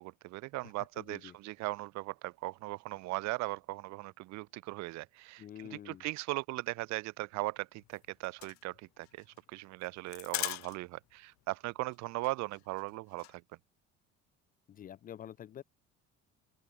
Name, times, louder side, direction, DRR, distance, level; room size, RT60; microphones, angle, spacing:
voice 1, 0.0-13.4, right 21 dB, 65° right, 1.8 m, -39 dB
voice 2, 1.0-1.3 5.4-6.0 14.7-15.6, left 10 dB, 30° left, 0.6 m, -47 dB
sound 1, 7.8-11.1 11.4-11.5 11.8-11.9 12.2-13.3, left 24 dB, 65° left, 0.7 m, -40 dB
open air
cardioid pair, 170°, 30 cm